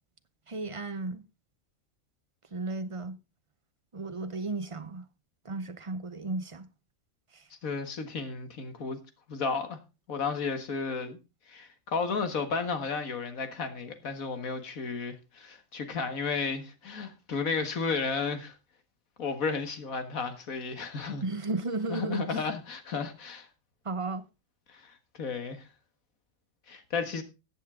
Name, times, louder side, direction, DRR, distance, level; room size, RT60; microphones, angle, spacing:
voice 1, 0.5-1.2 2.5-3.2 3.9-5.1 5.4-6.7 7.3-7.5 21.2-22.4 23.8-24.3, right 3 dB, 30° right, 0.8 m, -34 dB
voice 2, 7.6-9.0 9.3-9.8 10.1-11.2 11.5-18.5 19.2-21.2 21.9-23.5 24.7-25.7 26.7-27.2, left 5 dB, 90° left, 2.0 m, -33 dB
14.5 x 8.4 x 3.7 m
omnidirectional pair, 1.4 m